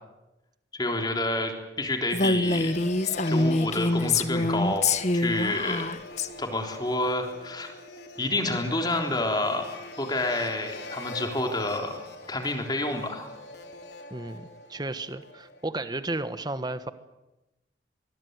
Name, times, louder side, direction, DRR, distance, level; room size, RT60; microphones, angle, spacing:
voice 1, 0.7-2.7 3.3-4.9 5.1-5.8 6.4-7.7 8.2-9.6 10.0-12.0 12.3-13.3, left 2 dB, 25° left, 4 dB, 3.6 m, -29 dB
Female speech woman speaking, 2.1-6.3, left 2 dB, 40° left, 1.3 m, -25 dB
sound 1, 2.4-15.7, left 2 dB, 70° left, 4.4 m, -43 dB
voice 2, 14.1-16.9, right 2 dB, 25° right, 12 dB, 1.3 m, -33 dB
25.0 x 20.5 x 9.5 m, 1.0 s
head